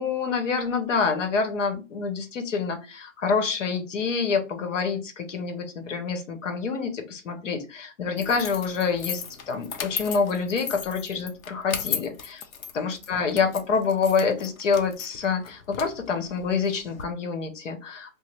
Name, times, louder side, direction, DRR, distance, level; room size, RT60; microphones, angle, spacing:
voice 1, 0.0-12.4 12.7-18.1, left 5 dB, 65° left, 6 dB, 0.9 m, -27 dB
sound 1, 8.2-17.0, left 7 dB, 85° left, 0.7 m, -36 dB
3.0 x 2.0 x 3.2 m, 0.31 s
hypercardioid pair, 170°, 40 cm